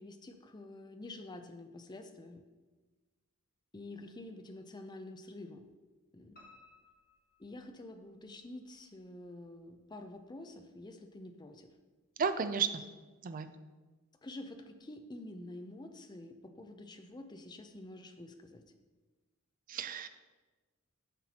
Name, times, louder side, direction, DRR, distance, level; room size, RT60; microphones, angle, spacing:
voice 1, 0.0-2.4 3.7-5.7 6.1-6.3 7.4-11.7 14.2-18.6, left 2 dB, 20° left, 6 dB, 0.5 m, -48 dB
Piano, 6.4-8.3 8.7-9.6 9.9-10.0 10.4-10.5 10.8-10.9, left 2 dB, 45° left, 1.3 m, -62 dB
voice 2, 12.2-12.8 13.2-13.5 19.7-20.1, right 6 dB, 40° right, 10 dB, 0.4 m, -33 dB
10.0 x 5.8 x 2.9 m, 1.3 s
head